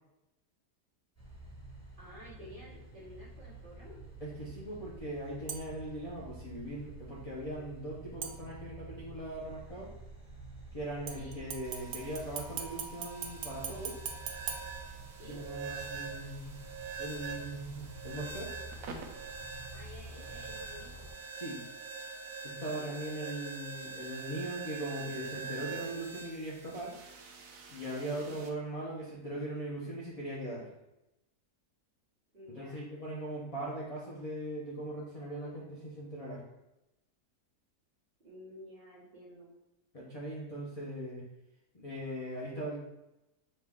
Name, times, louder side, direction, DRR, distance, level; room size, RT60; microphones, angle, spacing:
sound 1, 1.2-21.1, right 2 dB, 10° left, 1.2 m, -49 dB
voice 1, 2.0-4.0 11.1-11.4 15.1-15.4 19.7-21.1 22.7-23.0 28.1-28.3 32.3-32.9 38.2-39.5, left 1 dB, 35° right, -7 dB, 1.2 m, -52 dB
voice 2, 4.2-9.9 10.7-14.0 15.3-16.6 17.0-18.5 21.3-21.6 22.4-26.9 27.7-30.7 32.6-36.4 39.9-41.3 41.7-42.8, right 1 dB, 40° left, -5 dB, 0.5 m, -40 dB
sound 2, 5.5-5.9 8.2-8.9 11.1-15.5 15.9-16.0, right 7 dB, 90° right, 1.2 m, -42 dB
sound 3, 11.6-28.5, right 5 dB, 65° right, 1.0 m, -45 dB
5.4 x 2.3 x 3.5 m, 0.94 s
omnidirectional pair, 1.7 m